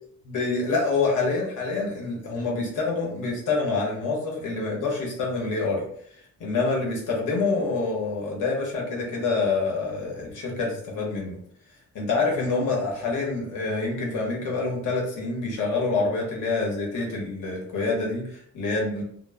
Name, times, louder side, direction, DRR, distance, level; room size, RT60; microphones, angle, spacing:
voice 1, 0.2-5.8 6.4-11.4 11.9-19.0, left 3 dB, 80° left, -2 dB, 0.9 m, -26 dB
2.1 x 2.0 x 3.3 m, 0.66 s
wide cardioid pair, 160°, 31 cm